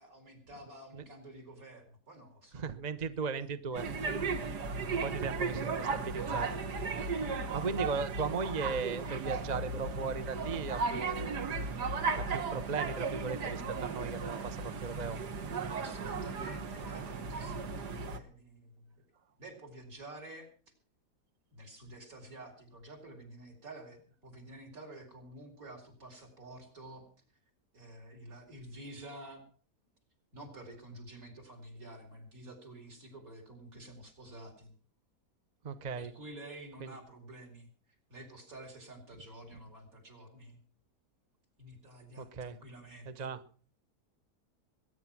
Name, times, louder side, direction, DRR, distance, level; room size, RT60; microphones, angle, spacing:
voice 1, 0.0-4.0 15.7-18.8 19.4-20.5 21.5-27.1 27.7-29.4 30.3-34.7 35.9-37.7 38.1-40.6 41.6-43.3, right 1 dB, 55° right, 2 dB, 4.9 m, -50 dB
voice 2, 2.5-3.9 4.7-6.6 7.5-11.4 12.1-15.2 35.6-36.1 36.8-36.9 42.2-42.6 43.0-43.4, right 5 dB, 35° right, 12 dB, 0.7 m, -37 dB
London - Kids shouting ext distant, 3.8-18.2, right 4 dB, 80° right, 2.0 m, -36 dB
21.5 x 9.8 x 5.9 m, 0.41 s
omnidirectional pair, 1.7 m